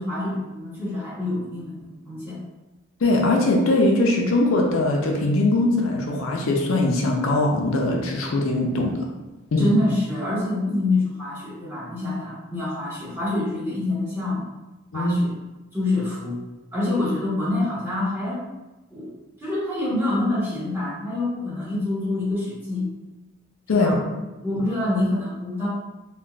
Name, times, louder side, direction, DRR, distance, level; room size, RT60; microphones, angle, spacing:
voice 1, 0.0-2.4 9.6-14.4 14.9-15.4 15.7-16.4 16.7-18.5 18.9-19.1 19.4-22.9 23.7-24.1 24.4-25.7, left 2 dB, 10° right, -10 dB, 1.0 m, -26 dB
voice 2, 3.0-9.0 9.5-9.7 14.9-15.1 23.7-23.9, left 2 dB, 75° left, 0 dB, 0.5 m, -21 dB
3.8 x 2.2 x 2.2 m, 1.1 s
head